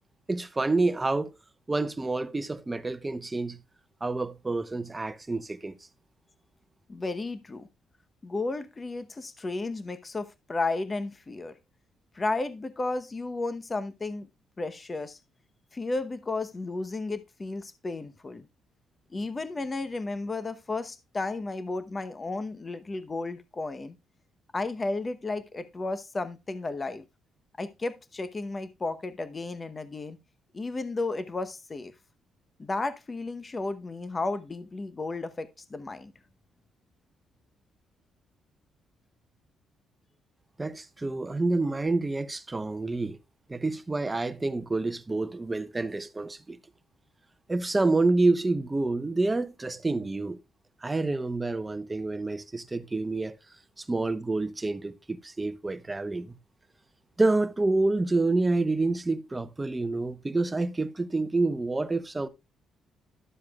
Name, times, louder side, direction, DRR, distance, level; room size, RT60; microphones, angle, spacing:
voice 1, 0.3-1.3 1.7-3.6 4.0-5.8 40.6-43.2 43.5-46.6 47.5-50.4 50.8-53.4 53.8-56.4 57.2-62.3, right 2 dB, 20° right, 0.9 m, -28 dB
voice 2, 6.9-7.7 8.2-11.6 12.1-14.3 14.6-15.2 15.7-18.5 19.1-23.9 24.5-27.0 27.6-30.2 30.5-31.9 32.6-36.1, left 3 dB, 30° left, 0.9 m, -33 dB
12.0 x 7.4 x 2.3 m
cardioid pair, 90°, 0 cm